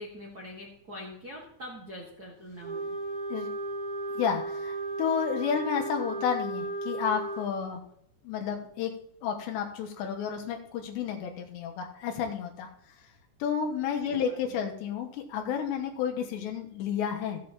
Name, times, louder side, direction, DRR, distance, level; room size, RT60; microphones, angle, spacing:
voice 1, 0.0-3.0 14.0-14.6, equal, 75° right, -3 dB, 0.8 m, -44 dB
Wind instrument woodwind instrument, 2.6-7.5, right 2 dB, 10° right, 2.8 m, -35 dB
voice 2, 4.2-7.8 8.2-8.9 9.2-12.7 13.4-17.4, left 7 dB, 85° left, 3 dB, 3.4 m, -31 dB
15.5 x 8.4 x 3.0 m, 0.72 s
omnidirectional pair, 4.9 m